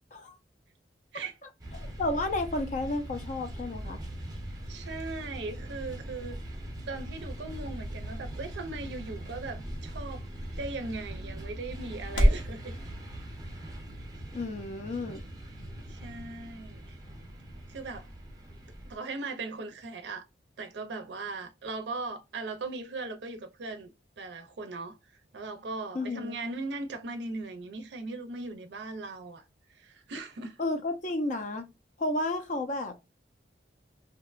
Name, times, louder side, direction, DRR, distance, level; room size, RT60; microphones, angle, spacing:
sound 1, 1.6-19.0, right 1 dB, 20° right, 0.7 m, -41 dB
voice 1, 1.7-4.0 14.3-15.2 25.9-26.3 30.6-31.6 32.0-32.9, left 2 dB, 40° left, 0.4 m, -32 dB
voice 2, 4.5-6.4 6.8-10.3 10.6-12.8 15.9-17.0 17.7-18.1 18.9-20.2 20.6-23.9 24.2-25.0 25.3-29.4 29.7-30.6, right 3 dB, 70° right, 0.4 m, -38 dB
sound 2, 6.3-12.5, equal, 85° left, 0.8 m, -33 dB
2.7 x 2.1 x 2.3 m
head